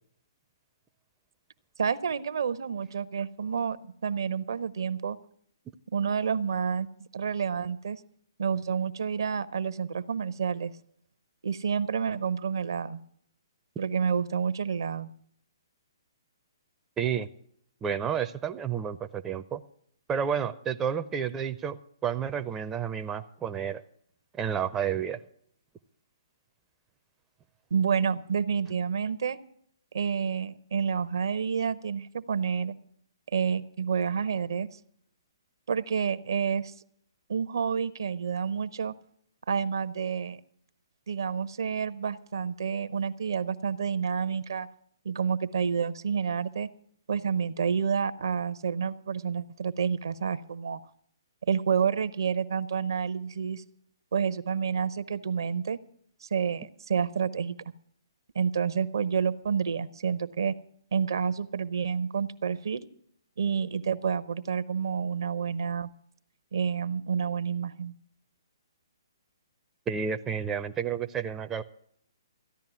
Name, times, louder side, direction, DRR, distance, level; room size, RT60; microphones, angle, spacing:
voice 1, 1.8-5.2 5.9-8.0 8.4-10.7 11.4-13.0 13.8-15.1 27.7-29.4 29.9-32.7 33.3-34.7 35.7-36.7 37.3-38.9 39.5-40.4 41.1-44.7 45.0-46.7 47.1-50.8 51.5-53.6 54.1-55.8 56.2-57.6 58.3-60.6 60.9-62.9 63.4-65.9 66.5-67.9, right 6 dB, 65° right, 14 dB, 0.6 m, -29 dB
voice 2, 17.0-17.3 17.8-19.6 20.1-23.8 24.4-25.2 69.9-71.6, right 7 dB, 15° right, 9 dB, 0.5 m, -30 dB
14.5 x 10.5 x 6.0 m, 0.65 s
figure-of-eight pair, 130°, 2 cm